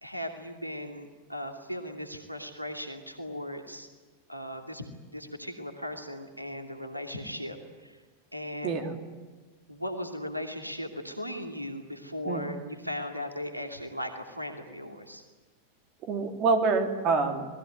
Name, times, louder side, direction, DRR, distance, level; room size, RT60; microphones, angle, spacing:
voice 1, 0.0-3.9 4.3-7.6 7.8-8.0 8.3-8.9 9.7-15.2, left 1 dB, 90° right, 4 dB, 2.7 m, -37 dB
voice 2, 8.6-9.0 12.2-12.5 16.0-17.5, right 4 dB, 40° right, 5 dB, 3.4 m, -26 dB
27.5 x 20.0 x 9.4 m, 1.4 s
figure-of-eight pair, 90°, 0 cm